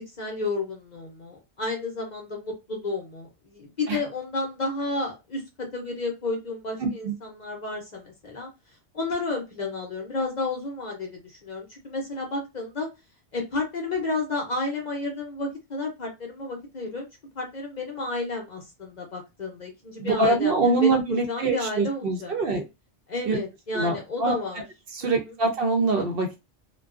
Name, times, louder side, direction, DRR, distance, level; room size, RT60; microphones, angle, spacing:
voice 1, 0.0-8.5 8.9-12.9 13.3-17.1 17.4-22.4 23.1-24.6 25.0-25.3, left 2 dB, 45° left, 1 dB, 0.7 m, -31 dB
voice 2, 6.8-7.1 20.0-22.6 23.3-23.4 23.7-24.3 24.9-26.4, right 3 dB, 60° right, 4 dB, 0.7 m, -24 dB
2.3 x 2.2 x 2.4 m, 0.24 s
omnidirectional pair, 1.2 m